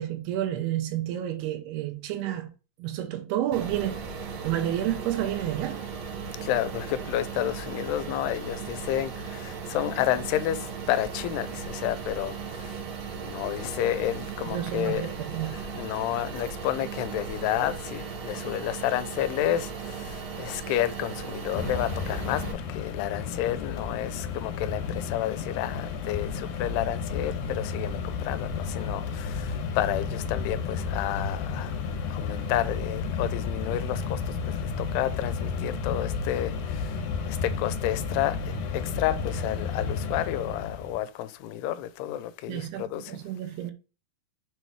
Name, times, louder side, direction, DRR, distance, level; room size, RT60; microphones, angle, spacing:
voice 1, 0.0-2.5 2.8-4.1 4.4-5.8 14.5-15.6 42.5-43.7, right 12 dB, 85° right, 2.8 m, -30 dB
sound 1, 3.5-22.5, right 5 dB, 65° right, 2.7 m, -37 dB
voice 2, 6.4-12.8 13.2-15.1 15.4-31.8 32.1-34.2 34.6-37.0 37.3-43.2, left 13 dB, 90° left, 2.6 m, -30 dB
Mechanisms, 21.5-41.0, left 5 dB, 70° left, 2.6 m, -32 dB
6.7 x 3.1 x 4.6 m
omnidirectional pair, 4.6 m